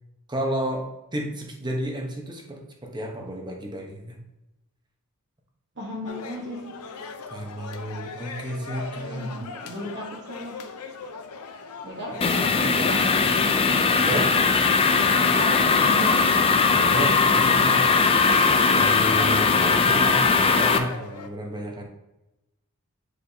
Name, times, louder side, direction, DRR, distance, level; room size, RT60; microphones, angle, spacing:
voice 1, 0.3-4.2 7.3-9.4 14.0-14.3 16.7-17.9 18.7-21.8, right 1 dB, 20° right, 1 dB, 1.0 m, -32 dB
voice 2, 5.8-6.8 8.9-10.6 11.8-13.0 15.4-16.3, equal, 50° right, -5 dB, 1.3 m, -36 dB
sound 1, 6.0-21.3, left 4 dB, 85° left, 0.7 m, -39 dB
sound 2, 12.2-20.8, left 4 dB, 25° left, 0.4 m, -20 dB
8.7 x 4.9 x 2.8 m, 0.96 s
head